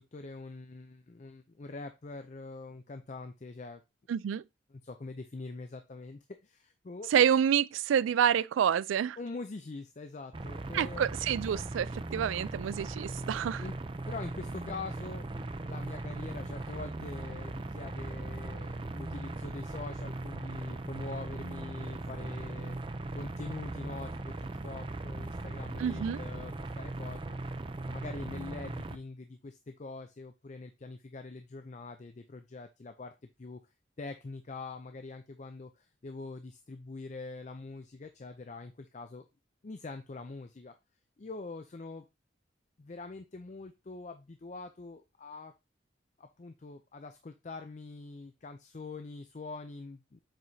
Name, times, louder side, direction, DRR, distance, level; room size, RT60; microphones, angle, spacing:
voice 1, 0.0-3.8 4.7-7.1 9.2-11.0 13.6-22.8 23.1-27.4 27.8-33.1 33.4-33.6 34.0-39.2 39.6-40.7 41.2-42.1 42.8-45.5 46.2-50.2, left 3 dB, 40° left, 0.5 m, -44 dB
voice 2, 4.1-4.4 7.1-9.2 10.7-13.6 25.8-26.2, right 8 dB, 90° right, 0.3 m, -28 dB
sound 1, 10.3-29.0, right 2 dB, 25° right, 0.5 m, -39 dB
7.5 x 4.8 x 2.7 m
head